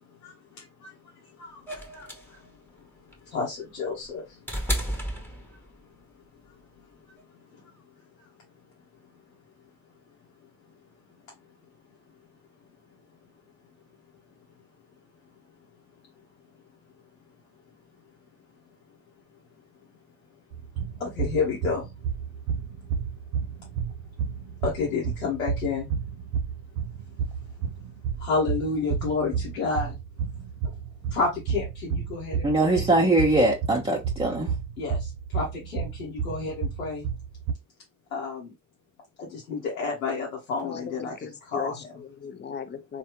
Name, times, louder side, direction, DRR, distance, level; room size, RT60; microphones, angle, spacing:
voice 1, 0.0-2.5 2.8-4.7 4.9-5.5 5.8-5.9 6.4-7.8 21.0-21.9 24.6-25.9 28.2-29.9 31.1-32.9 34.8-37.1 38.1-38.5 39.2-42.0, left 4 dB, 90° left, 0.8 m, -31 dB
sound 1, 1.7-5.9 7.2-7.3, equal, 5° left, 1.1 m, -33 dB
sound 2, 20.5-37.5, right 7 dB, 70° right, 0.5 m, -32 dB
voice 2, 32.4-34.5, right 2 dB, 15° right, 0.8 m, -22 dB
voice 3, 40.6-41.7 42.0-43.0, left 6 dB, 25° left, 0.6 m, -37 dB
3.3 x 2.3 x 2.9 m
hypercardioid pair, 45°, 40 cm